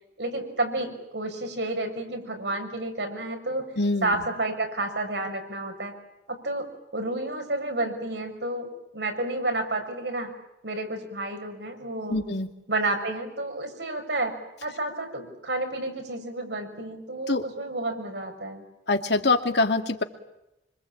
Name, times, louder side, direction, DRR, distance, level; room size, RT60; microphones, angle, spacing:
voice 1, 0.2-3.7 4.0-5.9 6.3-10.3 10.6-12.2 12.7-14.3 14.6-18.6, right 2 dB, 75° right, 4 dB, 6.6 m, -30 dB
voice 2, 3.8-4.2 12.1-12.5 17.3-17.4 18.9-20.0, left 3 dB, 75° left, 5 dB, 2.5 m, -24 dB
26.5 x 25.5 x 8.8 m, 0.88 s
head